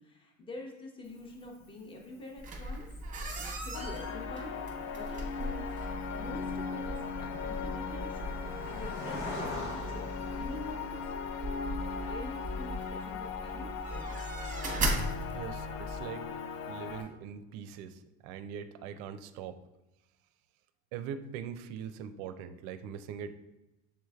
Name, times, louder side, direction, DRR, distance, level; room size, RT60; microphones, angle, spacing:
voice 1, 0.0-2.9 3.4-4.6 4.9-5.7 6.1-8.3 8.8-11.1 11.8-14.1, left 1 dB, 15° left, 1 dB, 0.8 m, -46 dB
Cricket, 1.0-17.0, left 1 dB, 85° left, 1.5 m, -48 dB
sound 1, 2.4-16.0, right 1 dB, 20° right, 0.9 m, -38 dB
sound 2, 3.7-17.0, left 6 dB, 65° left, 0.6 m, -39 dB
voice 2, 15.3-16.3 16.7-19.6 20.9-23.3, right 8 dB, 65° right, 11 dB, 0.5 m, -42 dB
7.0 x 3.1 x 2.3 m, 0.97 s
supercardioid pair, 100°, 37 cm